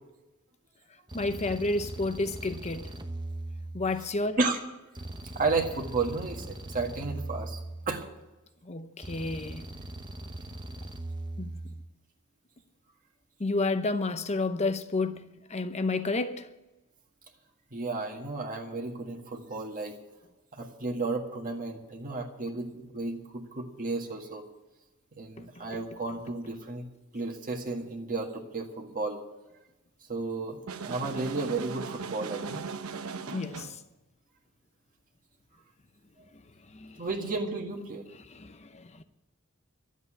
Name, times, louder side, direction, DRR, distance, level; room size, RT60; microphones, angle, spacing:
voice 1, 1.1-2.9 3.7-4.4 8.7-9.6 11.4-11.5 13.4-16.5 33.3-33.7 36.7-36.9 38.3-39.0, left 2 dB, 30° left, 0.8 m, -30 dB
sound 1, 1.1-4.2 4.9-8.2 9.0-11.9, right 1 dB, 20° right, 0.8 m, -40 dB
voice 2, 5.3-7.6 7.9-8.1 17.7-19.9 20.6-24.4 25.2-26.8 27.1-29.2 30.1-32.6 37.0-38.0, right 3 dB, 40° right, 1.7 m, -33 dB
sound 2, 30.7-33.8, right 5 dB, 85° right, 0.8 m, -38 dB
12.5 x 8.2 x 9.7 m
head